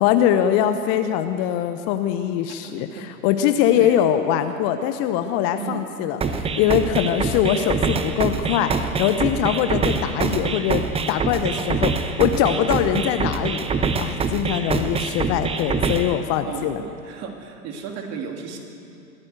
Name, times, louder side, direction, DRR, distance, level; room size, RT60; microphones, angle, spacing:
voice 1, 0.0-2.9 3.2-16.8, left 10 dB, 35° left, 9 dB, 0.9 m, -22 dB
voice 2, 2.6-3.0 3.8-4.0 5.6-5.8 16.5-18.6, right 6 dB, 35° right, 2 dB, 3.1 m, -34 dB
sound 1, 6.2-16.2, right 4 dB, 15° right, 0.9 m, -25 dB
22.0 x 15.0 x 8.0 m, 2.5 s
figure-of-eight pair, 105°, 45 cm